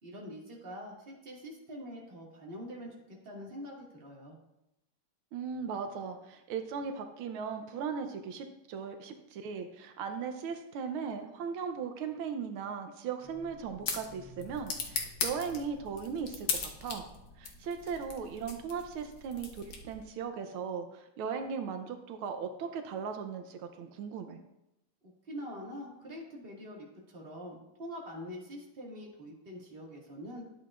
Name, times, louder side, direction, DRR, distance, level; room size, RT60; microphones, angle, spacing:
voice 1, 0.0-4.4 25.3-30.6, equal, 30° right, -3 dB, 1.8 m, -44 dB
voice 2, 5.3-17.1 17.4-24.4, right 6 dB, 85° right, 6 dB, 1.6 m, -38 dB
sound 1, 13.2-20.1, left 4 dB, 55° left, 1.3 m, -39 dB
12.0 x 8.0 x 2.4 m, 0.89 s
omnidirectional pair, 2.3 m